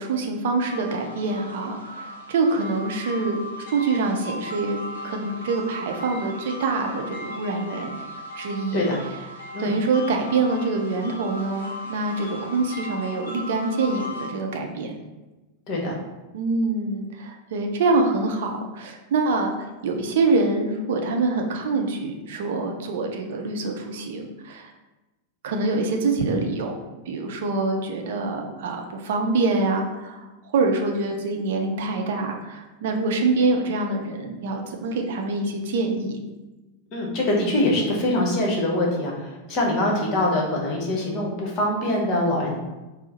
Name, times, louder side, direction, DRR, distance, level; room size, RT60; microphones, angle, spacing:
voice 1, 0.0-3.4 3.7-4.8 5.0-8.0 8.4-8.9 9.6-14.9 16.3-19.5 19.8-24.7 25.4-26.7 27.1-36.2, right 3 dB, 55° right, 3 dB, 0.5 m, -25 dB
sound 1, 0.6-14.3, left 1 dB, 70° left, 0.7 m, -37 dB
voice 2, 15.7-16.0 36.9-42.6, left 1 dB, 35° left, -1 dB, 1.0 m, -23 dB
4.4 x 2.0 x 4.1 m, 1.1 s
figure-of-eight pair, 90°, 0 cm